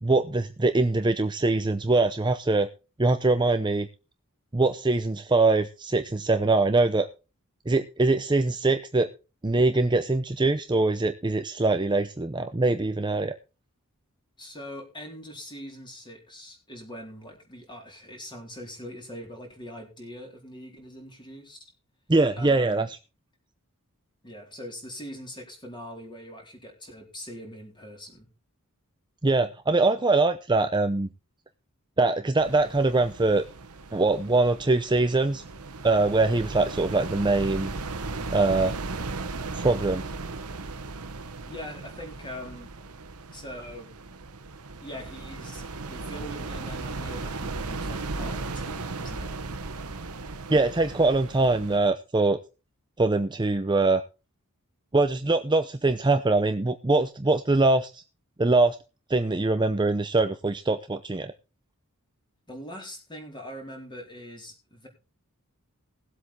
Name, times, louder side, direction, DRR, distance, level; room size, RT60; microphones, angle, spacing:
voice 1, 0.0-2.7 3.0-3.9 4.5-7.1 7.7-9.1 9.4-13.3 22.1-22.9 29.2-31.1 32.0-33.4 33.9-35.4 35.8-37.7 38.3-38.7 39.5-40.0 50.5-52.4 53.0-54.0 54.9-58.0 58.4-58.8 59.1-61.3, right 3 dB, 20° right, 8 dB, 0.7 m, -23 dB
voice 2, 14.4-21.6 22.4-22.9 24.2-28.3 41.4-42.7 43.3-43.9 44.8-49.4 62.5-64.9, equal, 20° left, 1 dB, 4.1 m, -42 dB
sound 1, 32.4-51.8, right 3 dB, 80° right, 1.3 m, -36 dB
17.5 x 8.0 x 4.3 m, 0.31 s
head